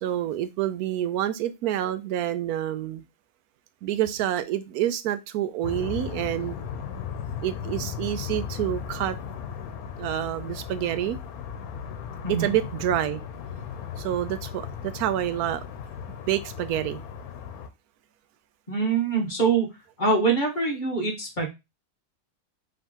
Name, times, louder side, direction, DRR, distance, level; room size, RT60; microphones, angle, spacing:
voice 1, 0.0-3.0 3.8-6.6 7.4-9.2 10.0-11.2 12.3-13.2 14.0-15.6 16.2-17.0, right 12 dB, 90° right, 12 dB, 1.1 m, -28 dB
sound 1, 5.6-17.7, left 7 dB, 85° left, 1.2 m, -36 dB
voice 2, 18.7-19.7 20.0-21.5, right 4 dB, 35° left, 1 dB, 1.3 m, -24 dB
4.9 x 3.2 x 2.9 m, 0.23 s
omnidirectional pair, 1.5 m